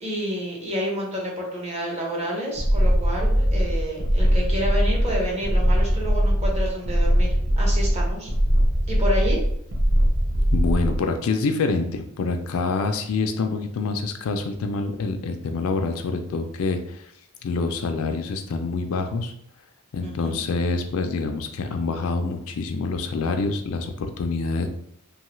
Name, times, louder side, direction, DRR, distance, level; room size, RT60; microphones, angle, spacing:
voice 1, 0.0-7.3 7.6-8.3 8.9-9.4 20.0-20.3, equal, 30° right, -3 dB, 0.8 m, -29 dB
sound 1, 2.6-11.0, equal, 70° right, 0.6 m, -21 dB
voice 2, 10.5-17.1 17.4-19.3 19.9-24.7, left 3 dB, 80° left, 6 dB, 0.4 m, -26 dB
2.8 x 2.3 x 3.0 m, 0.71 s
head